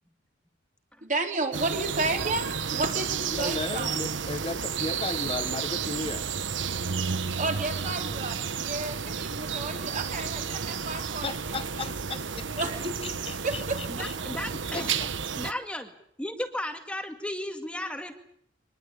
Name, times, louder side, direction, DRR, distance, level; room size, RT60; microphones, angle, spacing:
voice 1, 1.0-4.0 7.4-11.3 11.8-11.9 12.6-13.0 13.3-14.1, right 3 dB, 45° right, 3 dB, 4.4 m, -32 dB
sound 1, 1.5-15.5, right 6 dB, 80° right, 1.2 m, -32 dB
voice 2, 3.3-6.3 11.2-12.5 13.0-14.1 14.7-15.1, left 3 dB, 30° left, 10 dB, 1.0 m, -35 dB
voice 3, 13.9-14.9 15.4-15.9 16.2-18.1, left 1 dB, 5° left, 6 dB, 2.1 m, -34 dB
24.5 x 21.0 x 8.6 m, 0.67 s
head